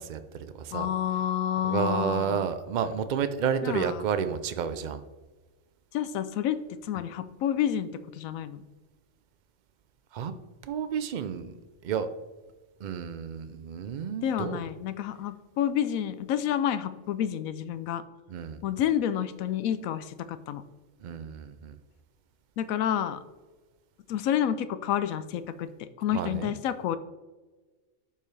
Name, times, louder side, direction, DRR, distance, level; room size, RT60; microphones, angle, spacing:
voice 1, 0.0-0.9 1.6-5.0 10.1-10.3 10.6-11.5 11.8-12.1 12.8-14.6 18.3-18.6 21.0-21.8 26.1-26.5, right 7 dB, 60° right, 10 dB, 0.4 m, -31 dB
voice 2, 0.7-2.5 3.6-4.1 5.9-8.7 14.2-18.0 18.6-20.6 22.6-23.2 24.1-27.0, left 10 dB, 85° left, 12 dB, 1.0 m, -29 dB
10.5 x 5.5 x 3.3 m, 1.2 s
omnidirectional pair, 1.4 m